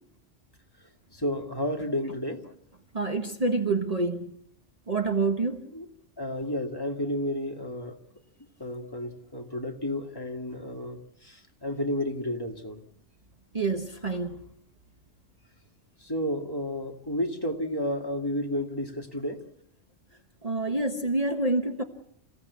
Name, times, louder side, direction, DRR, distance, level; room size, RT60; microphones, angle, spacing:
voice 1, 1.1-2.4 5.7-5.9 6.2-8.0 8.6-12.8 16.0-19.4, left 1 dB, 20° left, 2 dB, 2.3 m, -31 dB
voice 2, 2.9-4.3 4.9-5.7 13.5-14.4 20.4-21.8, right 3 dB, 35° right, 5 dB, 1.3 m, -27 dB
28.5 x 16.0 x 8.5 m, 0.73 s
omnidirectional pair, 1.2 m